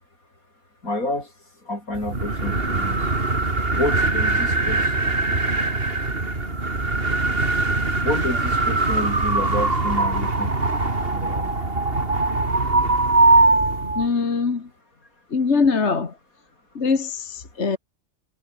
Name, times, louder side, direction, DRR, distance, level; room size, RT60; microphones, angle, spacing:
voice 1, 0.8-3.2 3.7-5.0 8.0-10.7 11.1-11.6, left 2 dB, 80° left, 8.1 m, -29 dB
sound 1, 1.9-14.1, right 2 dB, 40° right, 3.4 m, -21 dB
voice 2, 13.6-14.7 15.3-16.1 16.8-17.8, left 4 dB, 50° left, 2.1 m, -23 dB
omnidirectional pair, 1.5 m